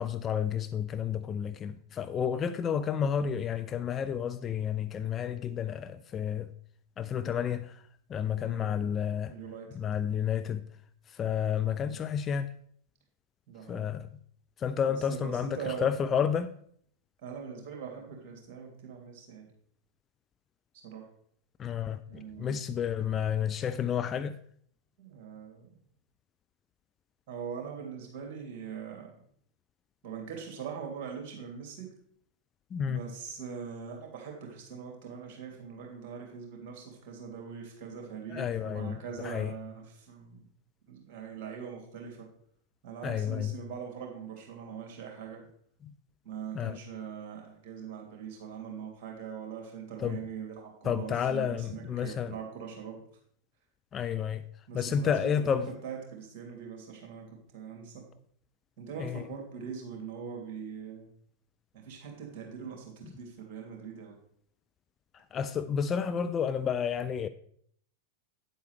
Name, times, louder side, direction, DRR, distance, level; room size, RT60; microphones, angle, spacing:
voice 1, 0.0-6.5 7.0-7.8 8.1-9.3 9.7-10.6 11.1-12.5 13.7-14.1 14.6-16.5 21.6-24.3 32.7-33.0 38.3-39.0 39.2-39.5 43.0-43.5 45.8-45.9 46.5-46.8 50.0-50.2 50.8-52.3 53.9-54.4 54.7-55.7 59.0-59.2 65.3-67.3, left 8 dB, 25° left, 0.4 m, -31 dB
voice 2, 8.4-8.7 9.3-9.7 11.6-11.9 13.5-13.9 14.9-15.9 17.2-19.5 20.8-21.1 22.1-22.7 25.0-25.7 27.3-29.1 30.0-31.9 32.8-40.5 40.9-42.3 42.8-45.4 46.2-53.0 54.7-55.6 55.8-58.0 58.8-61.1 61.7-64.2, right 7 dB, 40° right, 3.0 m, -42 dB
9.2 x 8.0 x 3.4 m
figure-of-eight pair, 90°, 0 cm